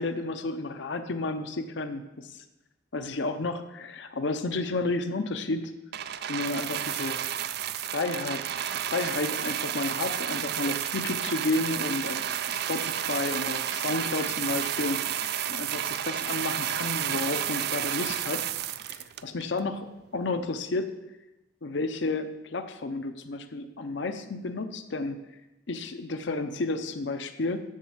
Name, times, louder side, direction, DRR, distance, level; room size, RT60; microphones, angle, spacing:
voice 1, 0.0-2.4 2.9-5.7 6.3-7.2 7.7-8.4 8.7-15.0 15.5-18.4 18.9-19.9 20.1-20.9 21.6-25.2 25.7-27.6, left 2 dB, 65° left, 7 dB, 0.6 m, -31 dB
sound 1, 5.9-19.6 20.4-20.5, right 10 dB, 55° right, 0.4 m, -31 dB
7.3 x 7.1 x 7.3 m, 1.0 s
head